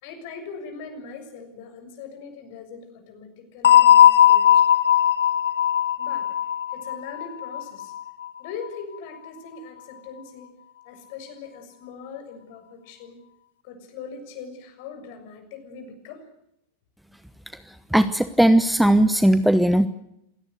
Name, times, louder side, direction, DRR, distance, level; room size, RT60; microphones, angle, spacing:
voice 1, 0.0-4.6 6.0-6.3 6.7-7.9 8.4-10.5 10.8-13.2 13.6-16.3, left 5 dB, 50° left, 7 dB, 6.7 m, -40 dB
sound 1, 3.6-8.3, left 10 dB, 65° left, 1.1 m, -17 dB
voice 2, 17.9-19.9, right 1 dB, ahead, 12 dB, 1.0 m, -18 dB
28.0 x 18.0 x 8.0 m, 0.80 s
figure-of-eight pair, 90°, 0 cm